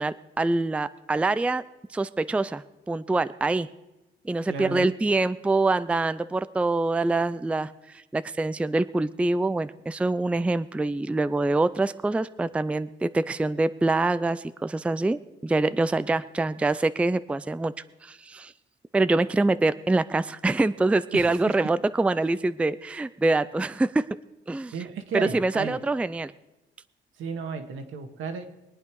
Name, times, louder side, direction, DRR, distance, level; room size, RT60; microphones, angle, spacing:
voice 1, 0.0-1.6 1.9-3.7 4.2-17.7 18.0-18.5 18.9-24.0 24.5-24.7 25.1-26.3, right 2 dB, 5° right, 15 dB, 0.4 m, -25 dB
voice 2, 4.5-4.9 21.1-21.6 24.7-25.8 27.2-28.5, right 5 dB, 80° right, 5 dB, 1.7 m, -33 dB
22.0 x 9.0 x 4.7 m, 1.0 s
cardioid pair, 90°, 20 cm